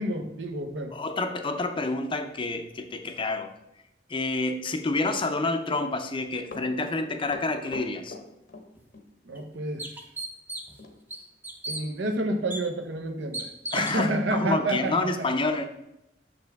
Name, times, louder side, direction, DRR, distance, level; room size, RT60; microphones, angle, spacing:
voice 1, 0.0-0.9 9.3-9.9 11.7-15.1, right 1 dB, 75° right, 5 dB, 0.8 m, -29 dB
voice 2, 0.9-3.5 4.1-8.2 13.7-15.6, left 2 dB, 30° left, 7 dB, 0.5 m, -28 dB
Run, 6.5-9.1 9.4-9.5 10.8-11.0 11.3-11.4 11.9-12.0 12.4-12.5 13.1-13.2, left 3 dB, 55° left, 0.8 m, -43 dB
sound 1, 8.7-8.8 9.4-9.5 9.8-10.8 11.1-11.8 12.5-12.6 13.3-14.0, right 2 dB, 10° right, 0.6 m, -35 dB
6.8 x 5.2 x 3.5 m, 0.85 s
head